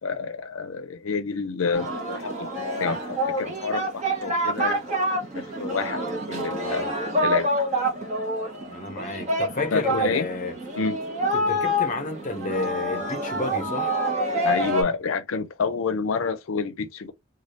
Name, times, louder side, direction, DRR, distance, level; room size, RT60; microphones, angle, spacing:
voice 1, 0.0-4.8 5.3-6.9 7.2-7.5 9.7-10.2 10.8-11.0 14.4-17.1, left 5 dB, 85° left, 0.5 m, -29 dB
Singing, 1.7-14.8, equal, 35° right, 1.1 m, -27 dB
voice 2, 6.6-6.9 8.7-10.5 11.3-13.9, left 2 dB, 40° left, 0.6 m, -31 dB
3.2 x 2.4 x 2.7 m
head